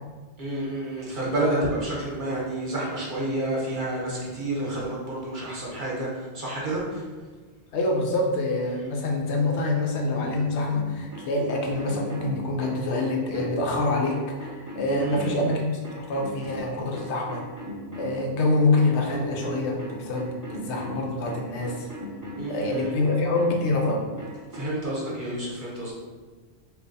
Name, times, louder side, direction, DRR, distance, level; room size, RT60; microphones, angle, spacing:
voice 1, 0.4-7.0 14.8-15.4 22.4-22.9 24.5-25.9, right 1 dB, 50° right, -5 dB, 1.1 m, -29 dB
voice 2, 7.7-15.7 15.9-17.4 18.0-21.9 22.5-24.0, left 2 dB, 80° left, 1 dB, 0.9 m, -26 dB
sound 1, 10.7-24.7, equal, 20° right, 0.6 m, -37 dB
3.3 x 2.5 x 3.9 m, 1.4 s
omnidirectional pair, 1.1 m